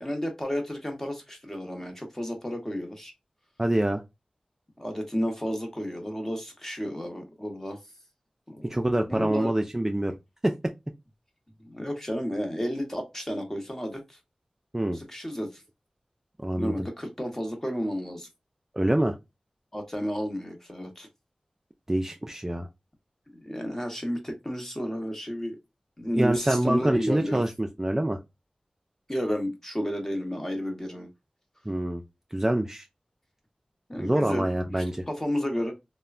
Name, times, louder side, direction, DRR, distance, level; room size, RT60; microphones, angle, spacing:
voice 1, 0.0-3.1 4.8-7.8 8.5-8.8 9.1-9.5 11.6-14.2 14.9-15.6 16.6-18.3 19.7-21.1 23.3-25.6 26.0-27.4 29.1-31.1 33.9-35.7, equal, 20° left, 0.9 m, -32 dB
voice 2, 3.6-4.0 8.6-10.2 10.4-10.5 14.7-15.0 16.4-16.9 18.7-19.2 21.9-22.7 26.1-28.2 31.7-32.0 32.3-32.9 34.0-35.0, right 1 dB, 20° right, 0.3 m, -26 dB
3.1 x 2.1 x 2.4 m
wide cardioid pair, 60°, 2 cm